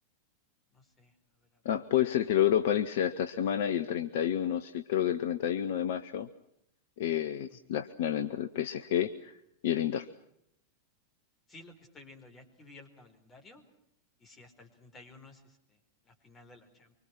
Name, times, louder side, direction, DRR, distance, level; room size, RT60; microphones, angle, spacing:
voice 1, 0.7-1.6 7.5-7.6 11.5-13.6 14.2-16.9, left 2 dB, 20° left, 5 dB, 4.8 m, -55 dB
voice 2, 1.6-6.3 7.0-9.4 9.6-10.1, left 10 dB, 55° left, 12 dB, 1.0 m, -29 dB
25.0 x 25.0 x 6.2 m, 0.76 s
figure-of-eight pair, 90°, 0 cm